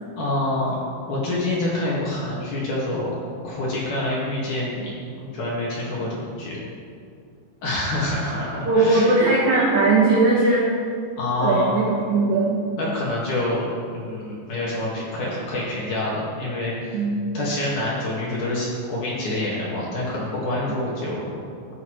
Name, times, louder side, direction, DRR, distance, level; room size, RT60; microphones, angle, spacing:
voice 1, 0.2-0.8 1.1-3.2 3.4-6.6 7.6-9.2 11.2-11.7 12.8-17.0 17.3-21.3, left 1 dB, 55° left, -6 dB, 2.7 m, -27 dB
voice 2, 8.6-10.7 11.4-12.6 16.9-17.2, right 3 dB, 80° right, -5 dB, 1.6 m, -19 dB
15.0 x 8.4 x 3.2 m, 2.3 s
omnidirectional pair, 5.4 m